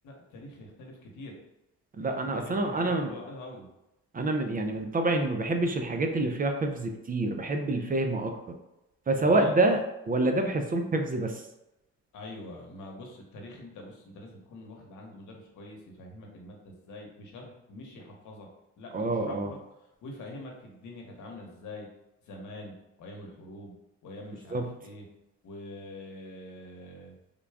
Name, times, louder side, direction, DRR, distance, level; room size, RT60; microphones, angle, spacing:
voice 1, 0.0-1.3 2.4-3.7 9.2-9.6 12.1-18.5 18.8-19.6 20.0-21.9 22.3-22.7 23.0-23.7 24.0-25.1 25.4-27.1, left 1 dB, 75° left, 0 dB, 1.0 m, -44 dB
voice 2, 2.0-3.1 4.1-8.3 9.1-9.8 10.1-11.5 18.9-19.5 24.5-24.7, right 2 dB, 30° right, 5 dB, 0.4 m, -27 dB
3.7 x 2.3 x 3.4 m, 0.92 s
cardioid pair, 90°, 30 cm